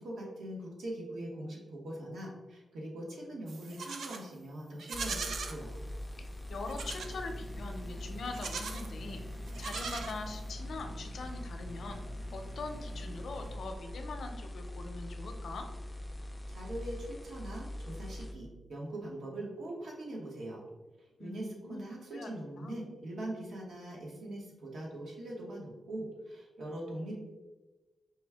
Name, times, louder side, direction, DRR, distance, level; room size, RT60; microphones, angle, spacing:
voice 1, 0.0-5.8 16.5-20.6 21.2-27.2, right 1 dB, 85° right, -2 dB, 1.2 m, -42 dB
Livestock farm animals working animals, 3.5-4.2 4.8-5.6 6.7-7.2 8.2-8.9 9.5-10.5, right 4 dB, 70° right, 0.4 m, -40 dB
sound 1, 4.9-18.3, left 1 dB, 10° left, 0.3 m, -42 dB
voice 2, 6.5-9.2 9.6-12.0 12.3-15.7 21.2-22.3 22.6-22.8, left 3 dB, 60° left, 4 dB, 0.5 m, -42 dB
sound 2, 6.7-13.6, right 1 dB, 20° right, 0.7 m, -51 dB
5.0 x 2.3 x 3.4 m, 1.1 s
wide cardioid pair, 165°, 0 cm